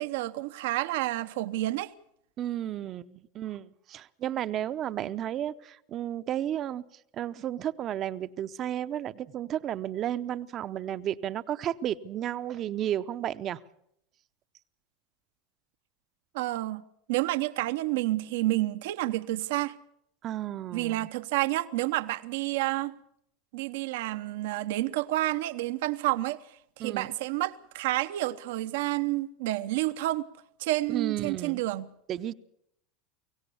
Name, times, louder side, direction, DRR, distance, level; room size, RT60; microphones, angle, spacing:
voice 1, 0.0-1.9 16.3-19.7 20.7-22.9 23.5-26.4 26.8-30.3 30.6-31.9, right 17 dB, 75° right, 0.8 m, -29 dB
voice 2, 2.4-6.8 7.1-13.6 20.2-21.1 26.8-27.1 30.9-31.6 32.1-32.3, right 11 dB, 45° right, 0.8 m, -33 dB
24.0 x 17.0 x 7.1 m
hypercardioid pair, 105°, 0 cm